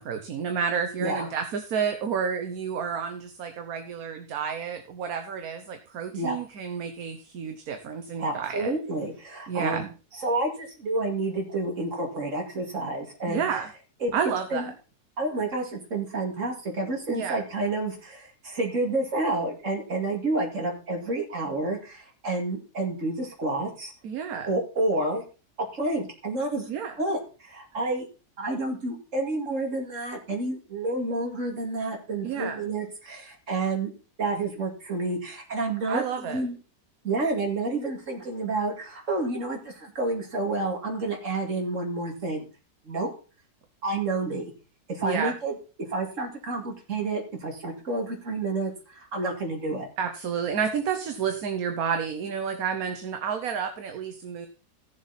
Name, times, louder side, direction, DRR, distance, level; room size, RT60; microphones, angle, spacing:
voice 1, 0.0-8.7 9.5-9.9 13.3-13.7 14.1-14.7 17.1-17.4 24.0-24.5 26.7-27.0 32.2-32.6 35.9-36.4 45.0-45.3 50.0-54.5, right 7 dB, 70° right, 6 dB, 1.4 m, -30 dB
voice 2, 8.2-9.9 10.1-13.6 14.0-14.1 14.5-14.7 15.2-23.9 24.4-25.2 25.6-26.7 27.0-28.1 28.4-33.9 34.2-36.6 37.0-42.4 42.9-43.1 43.8-44.5 44.9-45.6 45.9-49.9, right 2 dB, 50° right, 2 dB, 2.7 m, -29 dB
15.0 x 7.3 x 4.1 m, 0.35 s
omnidirectional pair, 1.7 m